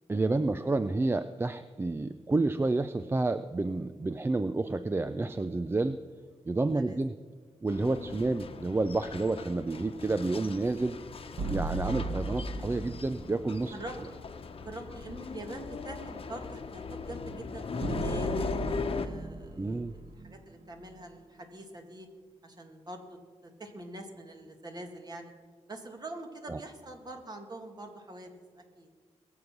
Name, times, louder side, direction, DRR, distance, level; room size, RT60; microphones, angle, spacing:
voice 1, 0.1-6.0 6.5-7.1 7.6-11.0 11.5-13.7 19.6-19.9 26.5-26.6, right 2 dB, 20° right, 12 dB, 0.5 m, -30 dB
sound 1, 7.7-19.1, left 4 dB, 55° left, 1.1 m, -39 dB
sound 2, 11.4-13.6 17.8-21.0, right 2 dB, 55° right, 1.3 m, -36 dB
voice 2, 13.7-14.2 14.6-22.1 22.4-25.3 25.7-28.3 28.6-28.9, right 2 dB, 35° right, 4 dB, 2.2 m, -44 dB
21.5 x 7.9 x 5.9 m, 1.5 s
cardioid pair, 80°, 11 cm